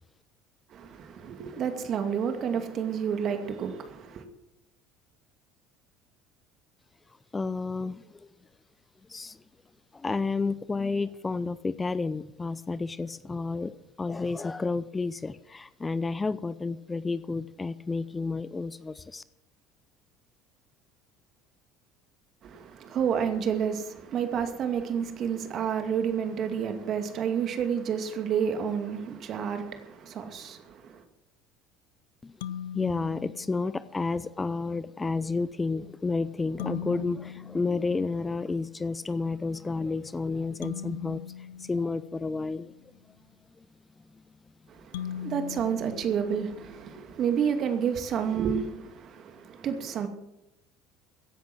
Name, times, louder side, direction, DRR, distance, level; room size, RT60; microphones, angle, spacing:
voice 1, 0.7-4.2 22.4-31.0 44.7-50.1, right 7 dB, 50° right, 2.3 m, -30 dB
voice 2, 7.3-8.1 9.1-9.4 9.9-13.7 14.0-19.2 32.2-32.3 32.7-42.7 43.6-43.7 44.1-44.2, left 3 dB, 20° left, 0.6 m, -31 dB
sound 1, 32.4-34.1 36.6-38.6 40.6-42.7 44.9-47.0, left 9 dB, 75° left, 0.5 m, -40 dB
16.0 x 10.5 x 6.2 m
hypercardioid pair, 65°, 0 cm